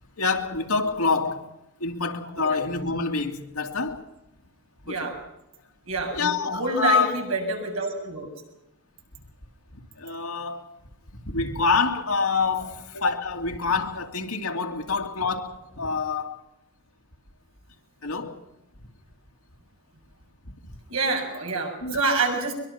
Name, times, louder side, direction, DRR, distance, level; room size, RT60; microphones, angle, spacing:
voice 1, 0.2-1.5 1.8-4.0 4.9-5.1 6.1-7.2 9.7-10.7 11.2-16.4 18.0-18.4 21.8-22.0, left 4 dB, 80° left, 3 dB, 2.4 m, -26 dB
voice 2, 5.9-8.3 20.9-22.5, right 3 dB, 75° right, 1 dB, 7.1 m, -27 dB
23.0 x 23.0 x 5.8 m, 0.87 s
head